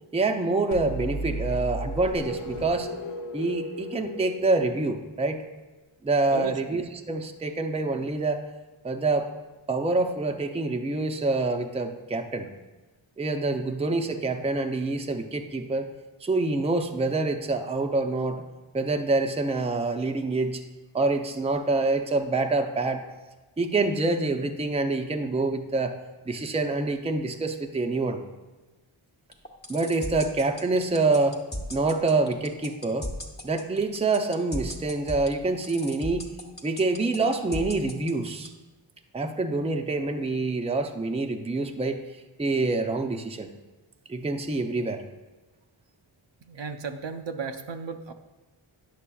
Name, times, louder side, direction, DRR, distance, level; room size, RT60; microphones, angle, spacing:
voice 1, 0.1-2.9 3.3-5.4 6.0-8.4 8.8-9.3 9.7-12.5 13.2-15.9 16.2-18.4 18.7-20.6 20.9-23.0 23.6-25.9 26.3-28.2 29.7-31.4 31.7-33.1 33.4-36.3 36.6-38.5 39.1-42.0 42.4-43.5 44.1-45.0, right 3 dB, 15° right, 5 dB, 0.4 m, -26 dB
sound 1, 0.7-5.4, equal, 85° left, 0.7 m, -35 dB
voice 2, 6.3-6.8 46.4-48.1, right 5 dB, 65° right, 7 dB, 0.5 m, -35 dB
sound 2, 29.3-38.5, equal, 20° left, 0.8 m, -36 dB
9.8 x 6.5 x 2.3 m, 1.2 s
wide cardioid pair, 45°, 49 cm